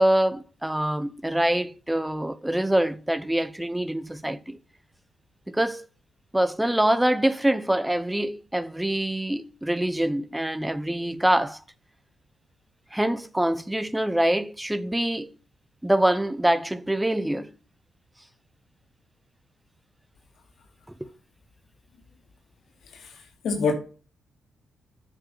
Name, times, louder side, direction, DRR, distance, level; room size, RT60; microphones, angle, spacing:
voice 1, 0.0-4.6 5.5-5.9 6.3-11.6 12.9-15.4 15.8-17.5 20.9-21.1, right 1 dB, 10° right, 0.8 m, -25 dB
voice 2, 22.9-23.2 23.4-23.7, left 4 dB, 75° left, 2.9 m, -25 dB
8.9 x 4.8 x 5.8 m
cardioid pair, 80°, 0 cm